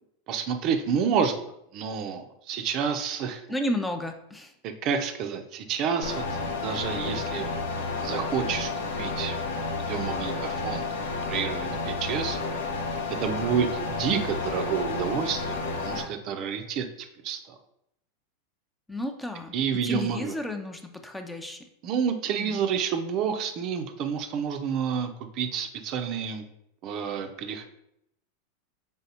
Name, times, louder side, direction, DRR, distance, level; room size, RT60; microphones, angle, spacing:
voice 1, 0.3-1.5 1.7-3.4 4.6-7.5 8.0-9.4 9.8-10.8 11.3-12.4 13.2-16.9 17.2-17.6 19.5-20.3 21.8-26.4 26.8-27.6, right 7 dB, 50° right, 6 dB, 0.4 m, -29 dB
voice 2, 3.5-4.5 18.9-19.5 19.8-21.6 22.4-22.6, left 1 dB, 5° left, 5 dB, 0.4 m, -32 dB
sound 1, 6.0-16.0, left 3 dB, 80° left, 0.7 m, -31 dB
4.0 x 3.4 x 2.7 m, 0.79 s
hypercardioid pair, 95°, 0 cm